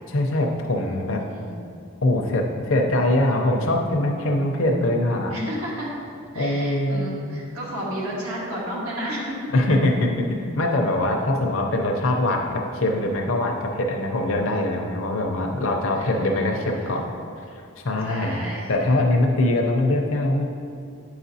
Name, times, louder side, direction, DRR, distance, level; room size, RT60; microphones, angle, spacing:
voice 1, 0.1-1.2 2.0-5.3 6.3-7.4 9.5-17.1 17.5-18.4 18.7-20.5, left 1 dB, 70° left, 0 dB, 0.6 m, -23 dB
voice 2, 0.8-1.6 5.3-5.9 6.3-9.5 15.9-17.0 18.1-18.7, equal, 90° right, -4 dB, 1.5 m, -32 dB
8.6 x 4.9 x 2.7 m, 2.5 s
head